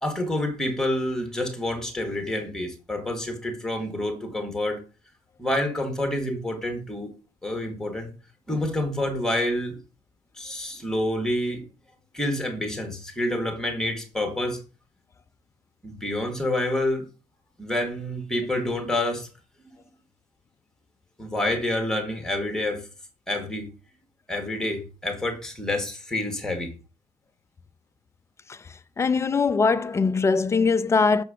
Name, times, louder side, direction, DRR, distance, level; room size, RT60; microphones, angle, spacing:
voice 1, 0.0-4.8 5.4-7.1 7.4-8.1 8.5-9.8 10.4-11.6 12.1-14.6 15.8-17.1 17.6-19.3 21.2-22.9 23.3-23.7 24.3-26.7, left 1 dB, 5° left, 1.8 m, -28 dB
voice 2, 29.0-31.2, left 4 dB, 20° left, 0.4 m, -21 dB
6.8 x 4.6 x 5.0 m
cardioid pair, 145°, 14 cm